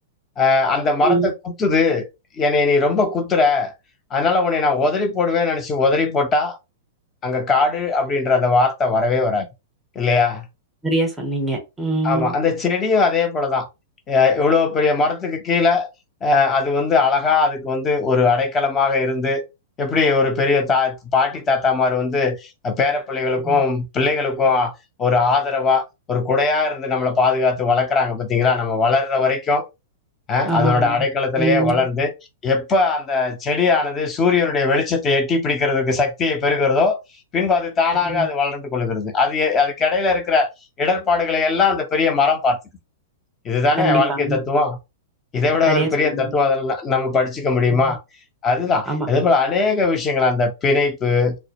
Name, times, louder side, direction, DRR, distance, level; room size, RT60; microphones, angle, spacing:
voice 1, 0.4-2.0 2.4-3.7 4.1-6.6 7.2-9.5 10.0-10.5 12.0-13.7 14.1-15.9 16.2-19.4 19.8-22.4 22.6-24.7 25.0-29.6 30.3-32.1 32.4-37.0 37.3-40.5 40.8-42.6 43.4-44.8 45.3-48.0 48.4-51.4, left 4 dB, 25° left, 0.6 m, -19 dB
voice 2, 1.0-1.3 10.8-12.3 23.4-23.6 30.5-30.9 31.4-31.8 38.0-38.3 43.8-44.4 45.7-46.4 47.7-47.8 48.9-49.1, right 3 dB, 10° right, 0.8 m, -23 dB
2.1 x 2.0 x 2.9 m
hypercardioid pair, 120°, 0 cm